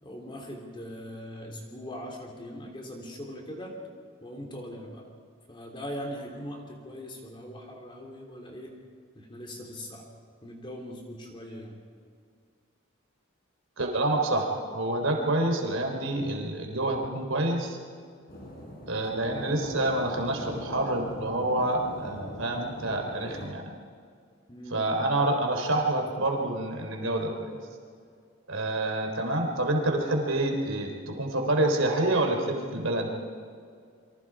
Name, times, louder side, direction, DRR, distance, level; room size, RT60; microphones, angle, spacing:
voice 1, 0.0-3.8 4.2-5.1 5.5-8.7 9.1-10.1 10.4-11.8 24.5-24.9, equal, 25° left, 1 dB, 3.2 m, -40 dB
voice 2, 13.8-17.8 18.9-23.7 24.7-27.6 28.5-33.1, right 1 dB, 75° right, 3 dB, 3.8 m, -27 dB
sound 1, 18.3-23.5, equal, 45° left, 4.4 m, -41 dB
28.5 x 24.5 x 4.9 m, 2.2 s
head